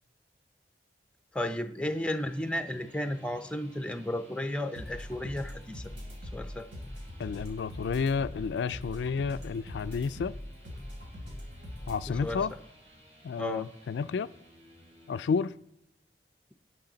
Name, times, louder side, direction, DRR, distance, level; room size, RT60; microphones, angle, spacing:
voice 1, 1.3-5.9 6.3-6.7 12.1-12.4 13.4-13.7, left 1 dB, 5° left, 0.5 m, -33 dB
sound 1, 1.7-15.5, equal, 40° right, 3.0 m, -57 dB
sound 2, 4.7-12.5, left 1 dB, 85° right, 3.4 m, -42 dB
voice 2, 7.2-10.4 11.9-12.5 13.2-14.3 15.1-15.5, left 5 dB, 80° left, 0.3 m, -31 dB
18.0 x 8.2 x 3.9 m
head